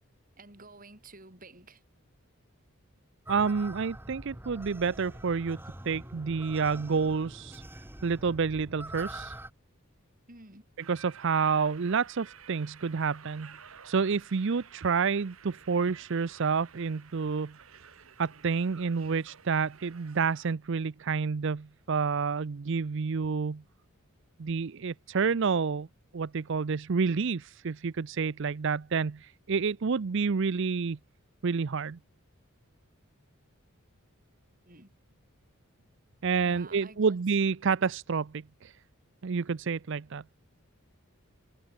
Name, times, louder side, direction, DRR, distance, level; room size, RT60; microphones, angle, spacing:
voice 1, 0.4-1.8 10.3-10.7 34.6-34.9 36.4-37.2, right 2 dB, 40° right, 5.6 m, -51 dB
sound 1, 3.3-9.5, right 1 dB, 10° right, 1.9 m, -44 dB
voice 2, 3.3-5.6 5.8-7.6 8.0-9.4 10.9-17.6 18.2-23.6 24.4-25.9 26.1-31.0 31.4-32.0 36.2-38.8 39.2-40.2, right 5 dB, 60° right, 0.5 m, -29 dB
sound 2, 10.8-20.5, right 7 dB, 80° right, 1.8 m, -53 dB
head